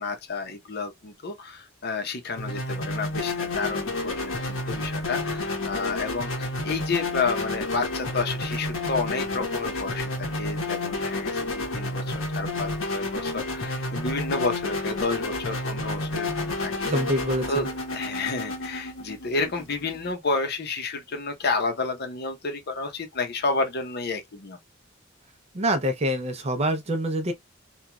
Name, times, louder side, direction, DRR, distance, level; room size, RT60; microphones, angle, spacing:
voice 1, 0.0-16.9 17.5-24.6, left 3 dB, 50° left, 0.8 m, -30 dB
sound 1, 2.4-20.1, left 2 dB, 85° left, 1.0 m, -30 dB
voice 2, 16.8-17.7 25.5-27.3, equal, 30° right, 0.5 m, -26 dB
3.0 x 2.3 x 2.2 m
head